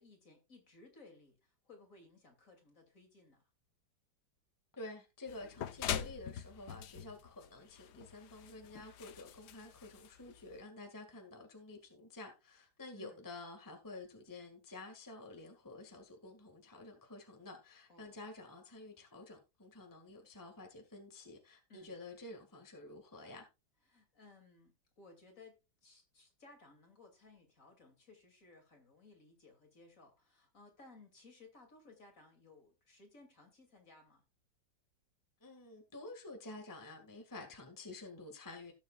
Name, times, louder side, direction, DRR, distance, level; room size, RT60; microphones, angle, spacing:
voice 1, 0.0-3.4 12.9-13.2 17.9-18.2 21.7-22.0 23.9-34.2, left 3 dB, 45° left, 3.0 m, -60 dB
voice 2, 4.7-23.5 35.4-38.7, left 2 dB, 10° left, 1.7 m, -50 dB
sound 1, 5.3-10.6, left 10 dB, 65° left, 1.3 m, -43 dB
18.0 x 7.2 x 2.4 m
omnidirectional pair, 2.1 m